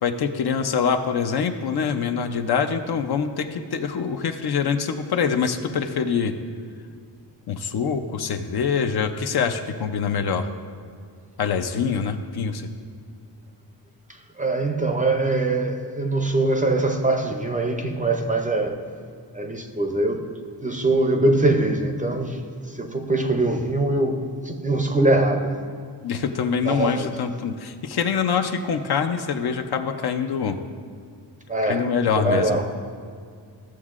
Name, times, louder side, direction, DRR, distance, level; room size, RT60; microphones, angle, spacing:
voice 1, 0.0-6.3 7.5-10.5 11.4-12.7 26.0-30.6 31.6-32.6, left 6 dB, 60° left, 0.6 m, -24 dB
voice 2, 14.4-18.8 19.3-20.3 20.6-22.4 22.7-25.6 26.7-27.1 31.5-31.9 32.2-32.7, right 2 dB, 20° right, 0.5 m, -22 dB
14.5 x 7.2 x 2.4 m
wide cardioid pair, 125°, 44 cm